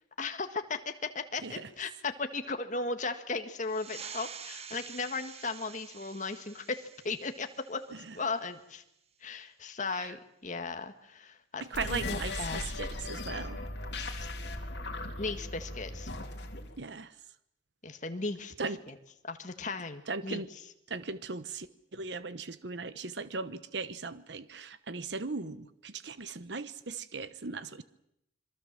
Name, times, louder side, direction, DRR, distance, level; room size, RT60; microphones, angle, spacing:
voice 1, 0.2-7.8 8.1-8.8 9.2-12.7 15.2-16.1 17.8-18.5 18.9-19.0 19.2-20.4, left 3 dB, 40° left, 7 dB, 1.8 m, -36 dB
sound 1, 3.6-8.7, right 7 dB, 35° right, 1.3 m, -48 dB
voice 2, 11.6-13.6 16.8-17.2 18.6-18.8 20.1-20.5 20.9-21.7 21.9-27.8, right 4 dB, 70° right, 14 dB, 1.0 m, -38 dB
sound 2, 11.7-16.7, left 2 dB, 65° left, 3.4 m, -38 dB
26.5 x 23.0 x 7.6 m, 0.79 s
head